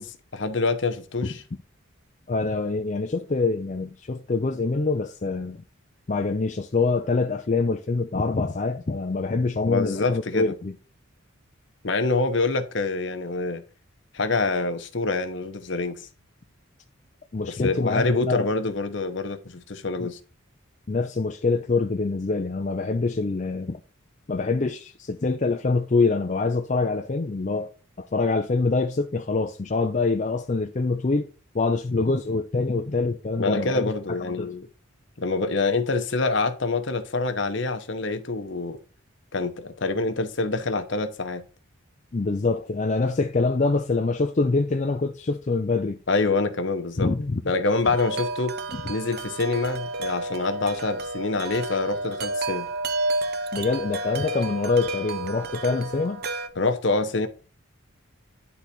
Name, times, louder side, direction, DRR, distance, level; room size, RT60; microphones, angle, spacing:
voice 1, 0.0-1.4 9.7-10.5 11.8-13.6 14.1-16.0 17.5-20.2 33.4-34.7 35.2-38.8 39.3-41.5 46.1-47.1 47.4-48.5 48.9-52.7 56.6-57.3, left 3 dB, 60° left, 1.0 m, -26 dB
voice 2, 2.3-5.6 6.1-10.8 17.3-18.5 20.0-20.1 20.9-23.8 24.3-27.7 28.1-31.3 31.5-33.9 34.4-34.5 42.1-46.0 47.0-47.4 48.7-48.8 53.5-56.2, left 3 dB, 35° left, 0.4 m, -25 dB
Wind chime, 47.8-56.5, right 2 dB, 50° right, 0.6 m, -31 dB
10.0 x 4.0 x 4.3 m
head